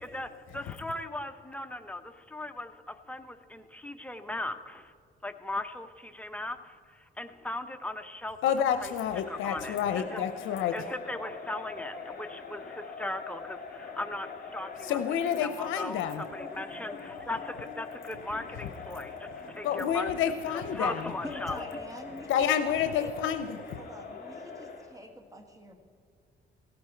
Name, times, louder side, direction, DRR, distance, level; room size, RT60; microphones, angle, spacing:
voice 1, 0.0-4.9 5.2-8.4 8.8-8.9 9.3-20.1 20.5-21.8, left 1 dB, 5° left, 7 dB, 0.8 m, -38 dB
voice 2, 8.4-10.7 14.8-16.2 19.6-21.1 22.3-23.6, left 9 dB, 85° left, 8 dB, 0.6 m, -29 dB
Crowd, 8.8-25.0, left 4 dB, 50° left, 2.6 m, -43 dB
voice 3, 21.2-22.3 22.6-23.3 23.7-25.8, equal, 15° right, 5 dB, 1.7 m, -45 dB
16.5 x 8.6 x 4.4 m, 2.3 s
cardioid pair, 90°, 20 cm